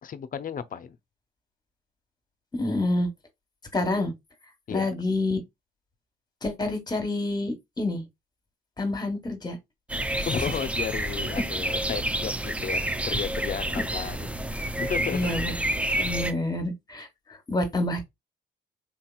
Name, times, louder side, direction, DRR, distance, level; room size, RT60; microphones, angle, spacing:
voice 1, 0.0-1.0 4.7-4.9 10.2-14.3 14.8-15.2, left 7 dB, 45° left, 0.6 m, -33 dB
voice 2, 2.5-3.1 3.7-4.1 4.7-5.4 6.4-8.0 8.8-9.6 13.9-14.0 15.1-15.5 16.0-18.1, left 2 dB, 20° left, 1.2 m, -28 dB
sound 1, 9.9-16.3, right 1 dB, 5° right, 0.4 m, -29 dB
3.9 x 2.8 x 2.3 m
cardioid pair, 90°, 20 cm